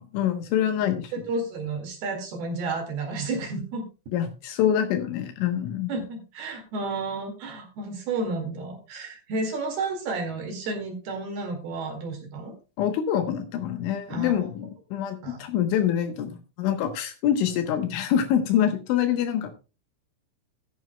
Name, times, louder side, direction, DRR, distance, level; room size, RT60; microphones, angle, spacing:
voice 1, 0.0-1.1 4.1-5.9 12.8-19.5, left 9 dB, 75° left, 7 dB, 3.2 m, -25 dB
voice 2, 1.3-3.8 5.9-12.5 14.1-14.4 15.2-15.4, right 3 dB, 60° right, 3 dB, 3.4 m, -31 dB
15.5 x 10.5 x 2.2 m, 0.31 s
omnidirectional pair, 6.0 m